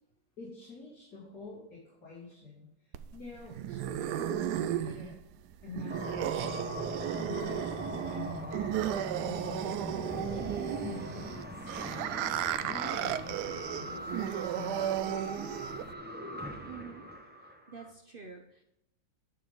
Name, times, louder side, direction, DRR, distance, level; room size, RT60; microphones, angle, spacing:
voice 1, 0.4-5.1 5.6-7.0 7.2-10.4 10.8-12.3 12.6-15.8, left 4 dB, 80° left, -8 dB, 3.4 m, -47 dB
sound 1, 2.9-15.9, right 11 dB, 85° right, 1.2 m, -34 dB
sound 2, 5.9-17.9, equal, 10° right, 0.8 m, -41 dB
voice 2, 16.7-17.0 17.7-18.6, right 6 dB, 45° right, 3 dB, 0.8 m, -47 dB
10.5 x 6.8 x 3.8 m, 0.83 s
omnidirectional pair, 1.7 m